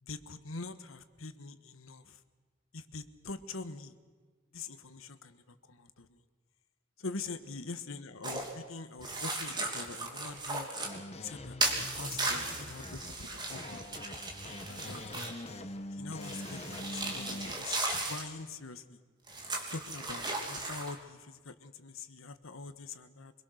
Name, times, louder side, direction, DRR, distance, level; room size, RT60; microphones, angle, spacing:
voice 1, 0.0-2.2 2.7-3.9 4.5-6.2 7.0-10.7 11.2-13.0 13.3-13.9 14.7-15.3 15.9-19.0 19.7-23.3, left 3 dB, 80° left, 11 dB, 1.3 m, -44 dB
sound 1, 8.2-8.5 9.0-10.9 11.6-15.5 16.2-18.3 19.3-20.9, right 2 dB, 20° right, 2.9 m, -36 dB
sound 2, 10.8-17.5, left 1 dB, 30° left, 1.2 m, -44 dB
25.0 x 22.0 x 6.5 m, 1.5 s
head